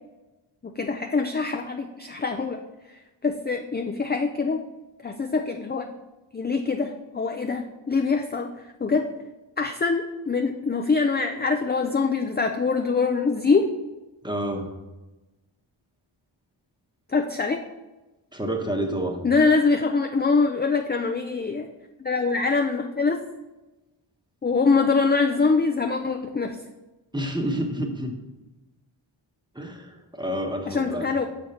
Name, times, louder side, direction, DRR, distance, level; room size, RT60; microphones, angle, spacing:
voice 1, 0.6-2.6 3.2-4.6 5.0-5.9 6.3-8.5 8.8-9.1 9.6-13.7 17.1-17.6 19.2-21.7 22.0-23.2 24.4-26.6 30.7-31.3, left 4 dB, 20° left, 4 dB, 0.4 m, -24 dB
voice 2, 14.2-14.7 18.3-19.2 27.1-28.1 29.5-31.1, right 1 dB, 10° right, 2 dB, 1.0 m, -29 dB
6.3 x 5.2 x 4.2 m, 1.1 s
wide cardioid pair, 70°, 50 cm